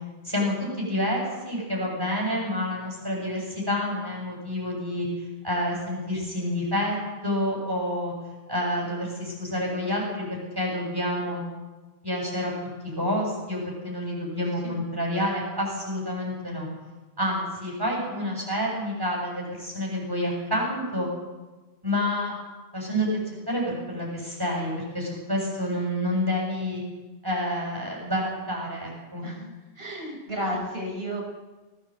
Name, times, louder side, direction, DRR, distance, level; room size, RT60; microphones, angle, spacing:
voice 1, 0.2-5.1 5.4-6.9 7.2-8.1 8.5-11.4 12.0-12.5 12.8-16.7 17.2-21.1 21.8-22.3 22.7-23.1 23.5-26.8 27.2-29.3, left 1 dB, 20° right, -2 dB, 7.9 m, -28 dB
voice 2, 14.3-14.8 29.2-29.5 29.8-31.2, equal, 65° right, -1 dB, 5.6 m, -33 dB
21.0 x 17.5 x 8.1 m, 1.2 s
omnidirectional pair, 1.1 m